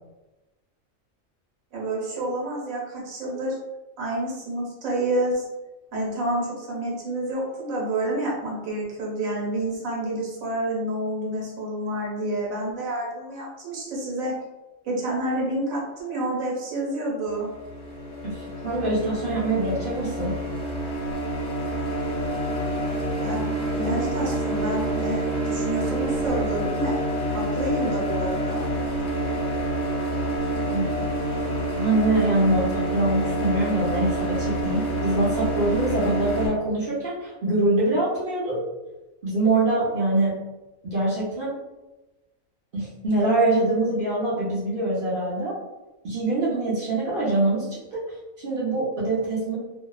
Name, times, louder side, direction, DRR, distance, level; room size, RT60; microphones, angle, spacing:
voice 1, 1.7-3.5 4.0-5.5 5.9-14.3 14.8-17.5 23.2-23.5 23.7-27.0 27.3-28.7, right 1 dB, 80° right, -4 dB, 1.2 m, -28 dB
sound 1, 17.3-36.5, right 1 dB, 70° left, 1.1 m, -27 dB
voice 2, 18.6-20.3 30.7-30.9 31.8-38.6 39.2-40.3 40.8-41.5 42.7-45.5 46.0-47.7 48.4-49.6, right 2 dB, 50° right, -8 dB, 0.7 m, -24 dB
2.7 x 2.0 x 2.3 m, 1.1 s
omnidirectional pair, 1.4 m